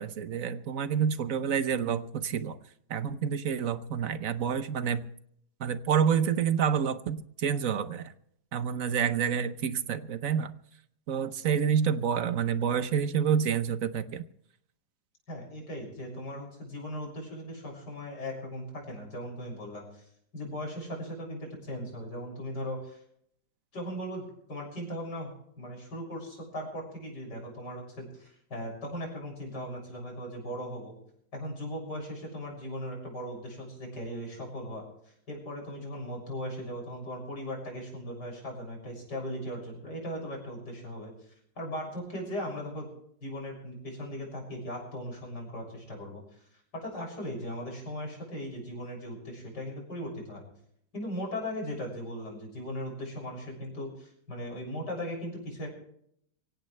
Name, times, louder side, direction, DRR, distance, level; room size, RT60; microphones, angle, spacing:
voice 1, 0.0-2.6 2.9-5.1 5.6-8.1 8.5-10.5 11.1-14.2, right 7 dB, 55° right, 12 dB, 1.1 m, -28 dB
voice 2, 15.3-20.0 20.3-23.0 23.7-30.9 31.3-41.1 41.6-42.9 43.2-46.2 46.8-50.4 50.9-55.7, equal, 65° left, 0 dB, 7.4 m, -38 dB
24.0 x 17.0 x 3.3 m, 0.70 s
omnidirectional pair, 1.9 m